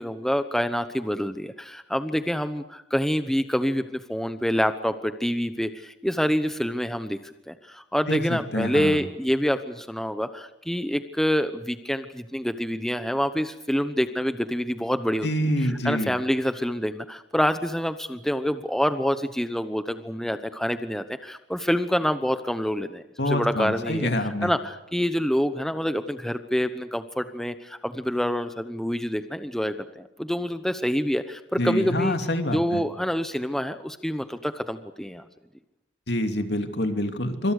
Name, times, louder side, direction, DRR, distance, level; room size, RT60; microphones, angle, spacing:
voice 1, 0.0-15.3 15.8-32.2 32.5-35.2, equal, ahead, 9 dB, 1.0 m, -27 dB
voice 2, 8.1-9.0 15.2-16.2 23.2-24.5 31.6-32.8 36.1-37.5, left 1 dB, 65° left, 6 dB, 2.8 m, -26 dB
26.0 x 26.0 x 6.6 m, 0.87 s
head